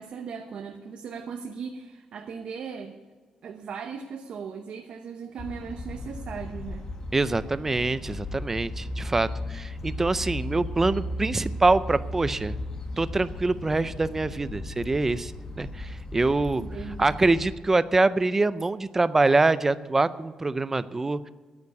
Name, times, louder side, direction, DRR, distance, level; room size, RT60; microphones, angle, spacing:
voice 1, 0.0-3.0 3.4-6.8 16.6-17.2, right 6 dB, 55° right, 4 dB, 0.9 m, -38 dB
sound 1, 5.4-17.5, left 1 dB, 30° left, 1.2 m, -36 dB
voice 2, 7.1-12.6 13.0-16.6 17.0-21.3, right 3 dB, 15° right, 15 dB, 0.4 m, -24 dB
9.6 x 9.3 x 8.5 m, 1.4 s
cardioid pair, 155°, 2 cm